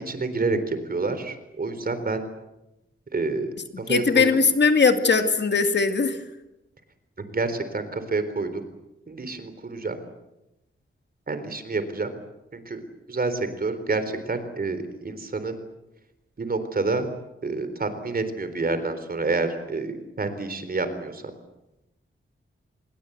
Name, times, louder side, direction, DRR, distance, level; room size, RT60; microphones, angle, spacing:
voice 1, 0.0-2.2 3.1-4.3 7.3-8.7 9.1-10.0 11.3-12.1 12.5-12.8 13.1-15.5 16.4-17.1 17.4-21.2, right 3 dB, 45° right, 10 dB, 3.9 m, -28 dB
voice 2, 3.9-6.2, left 4 dB, 55° left, 7 dB, 2.3 m, -20 dB
27.5 x 22.0 x 8.1 m, 0.93 s
wide cardioid pair, 125°, 21 cm